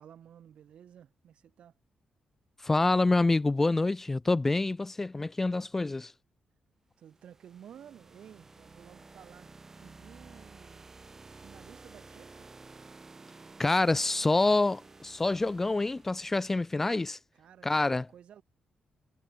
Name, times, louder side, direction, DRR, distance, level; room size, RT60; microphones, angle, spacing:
voice 1, 0.0-1.8 7.0-9.5 9.8-12.5 17.3-18.4, right 9 dB, 65° right, 6.4 m, -54 dB
voice 2, 2.6-6.1 13.6-17.2 17.6-18.1, left 2 dB, 15° left, 0.5 m, -27 dB
sound 1, 7.0-16.8, right 3 dB, 20° right, 3.4 m, -52 dB
wide cardioid pair, 160°, 2 cm